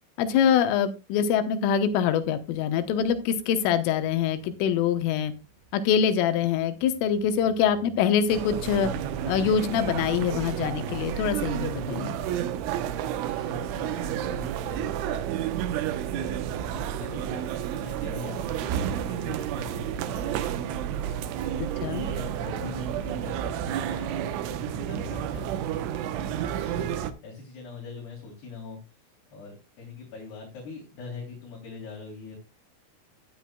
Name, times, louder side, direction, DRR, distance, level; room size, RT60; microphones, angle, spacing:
voice 1, 0.2-5.3 5.7-8.9 9.3-12.2 21.8-22.1, left 8 dB, 85° left, 9 dB, 3.5 m, -24 dB
sound 1, 1.8-11.3, right 1 dB, 40° right, 7.1 m, -48 dB
sound 2, 8.3-27.1, right 10 dB, 80° right, 3.2 m, -31 dB
voice 2, 13.0-21.6 22.0-25.7 26.6-26.9 27.2-28.8 29.3-32.4, left 4 dB, 55° left, -2 dB, 5.0 m, -43 dB
15.0 x 10.0 x 2.2 m, 0.25 s
omnidirectional pair, 5.7 m